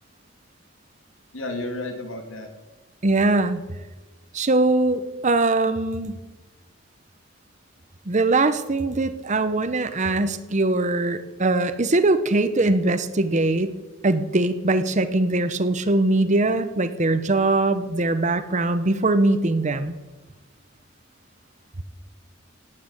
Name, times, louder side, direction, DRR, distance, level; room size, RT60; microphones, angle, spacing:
voice 1, 1.3-2.5, left 2 dB, 80° left, 4 dB, 2.8 m, -32 dB
voice 2, 3.0-3.6 4.3-6.2 8.1-13.7 14.0-20.0, right 2 dB, 35° right, 11 dB, 0.8 m, -21 dB
17.0 x 8.7 x 8.4 m, 1.2 s
head